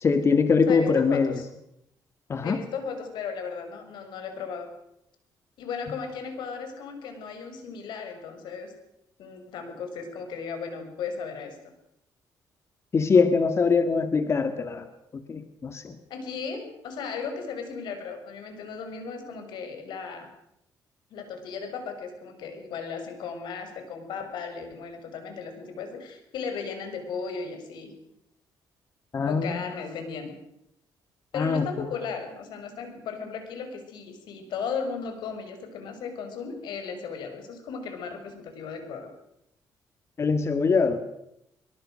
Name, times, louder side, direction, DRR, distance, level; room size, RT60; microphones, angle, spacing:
voice 1, 0.0-1.3 2.3-2.6 12.9-14.9 15.3-16.0 29.1-29.6 31.3-31.7 40.2-41.0, left 5 dB, 35° left, 9 dB, 1.9 m, -23 dB
voice 2, 0.7-1.5 2.4-4.7 5.6-8.7 9.2-11.6 16.1-20.3 21.1-27.9 29.3-30.4 31.3-39.1, left 5 dB, 85° left, 6 dB, 6.4 m, -36 dB
23.0 x 23.0 x 6.5 m, 0.80 s
cardioid pair, 115°, 7 cm